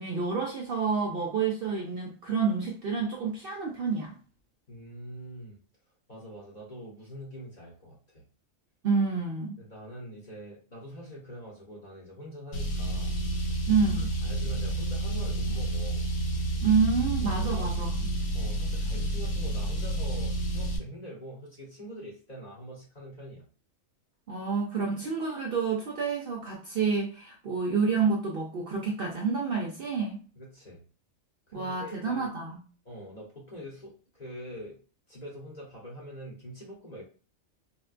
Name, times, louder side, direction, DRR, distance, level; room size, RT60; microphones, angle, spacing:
voice 1, 0.0-4.2 8.8-9.6 13.7-14.1 16.6-18.1 24.3-30.2 31.5-32.6, right 5 dB, 60° right, 0.6 m, -28 dB
voice 2, 4.7-5.6 6.1-8.2 9.6-13.2 13.9-16.1 17.4-17.7 18.3-23.5 30.4-30.8 31.5-32.3 32.8-34.8 35.1-37.0, equal, 35° left, 0.9 m, -44 dB
Car, 12.5-20.8, right 1 dB, 85° left, 1.3 m, -30 dB
4.2 x 2.2 x 2.4 m
omnidirectional pair, 1.4 m